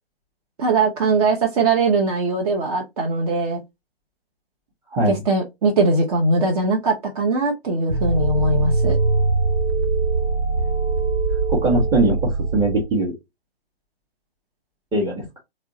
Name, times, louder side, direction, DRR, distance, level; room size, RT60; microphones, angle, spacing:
voice 1, 0.6-3.6 5.1-9.0, right 3 dB, 35° right, 0 dB, 1.0 m, -21 dB
voice 2, 4.9-5.2 11.5-13.1 14.9-15.4, right 1 dB, 15° right, -4 dB, 1.1 m, -21 dB
sound 1, 7.9-12.9, right 3 dB, 85° right, 1.1 m, -21 dB
3.6 x 3.1 x 2.7 m, 0.20 s
figure-of-eight pair, 120°, 31 cm